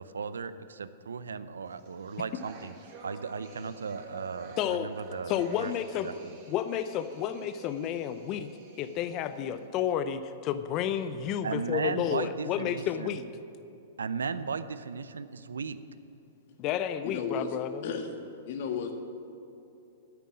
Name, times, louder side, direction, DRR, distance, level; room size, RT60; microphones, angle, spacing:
voice 1, 0.0-2.7 3.0-5.7 6.0-6.4 11.4-13.2 14.0-15.8, right 5 dB, 80° right, 13 dB, 0.6 m, -36 dB
sound 1, 1.8-9.7, right 3 dB, 45° right, 3.3 m, -49 dB
voice 2, 4.6-4.9 5.3-6.1 6.5-8.5 8.8-13.3 16.6-17.8, left 9 dB, 40° left, 11 dB, 0.6 m, -31 dB
voice 3, 17.0-17.6 17.8-18.1 18.5-18.9, left 6 dB, 55° left, 5 dB, 1.6 m, -33 dB
10.5 x 9.1 x 8.8 m, 2.8 s
hypercardioid pair, 115°, 0 cm